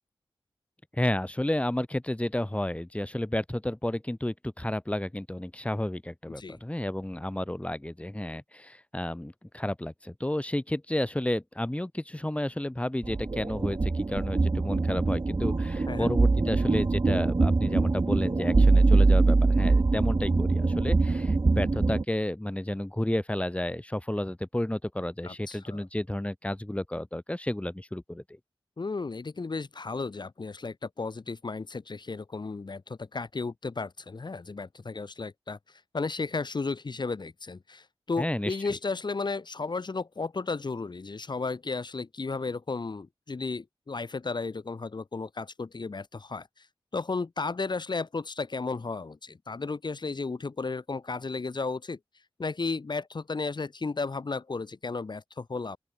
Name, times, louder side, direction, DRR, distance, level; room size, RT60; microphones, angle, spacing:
voice 1, 0.9-28.2 38.2-38.6, left 1 dB, 15° left, 6.7 m, -31 dB
sound 1, 13.0-22.0, right 3 dB, 45° right, 3.3 m, -23 dB
voice 2, 25.2-25.8 28.8-35.6 35.9-46.7 46.9-52.0 52.4-55.8, left 4 dB, 55° left, 4.4 m, -34 dB
open air
wide cardioid pair, 65°, 9 cm